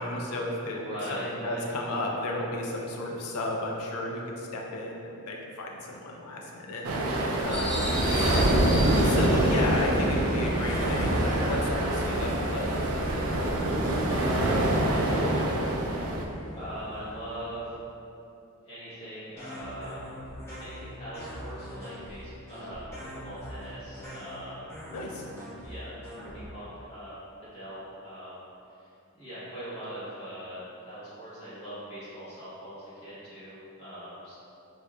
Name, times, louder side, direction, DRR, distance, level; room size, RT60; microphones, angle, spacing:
voice 1, 0.0-0.8 1.1-6.9 7.5-8.1 9.0-12.7 24.9-25.2, left 1 dB, 90° left, 0 dB, 0.5 m, -33 dB
voice 2, 0.6-1.6 7.1-8.2 14.1-15.5 16.5-17.7 18.7-20.2 20.6-24.7 25.6-25.9 26.3-28.4 28.8-34.4, equal, 30° left, -12 dB, 1.1 m, -41 dB
sound 1, 6.8-16.2, right 1 dB, 70° right, 0.4 m, -26 dB
sound 2, 7.5-17.4, equal, 35° right, 0.7 m, -33 dB
sound 3, 19.4-26.5, equal, 10° left, 0.7 m, -42 dB
4.1 x 2.3 x 2.2 m, 2.7 s
head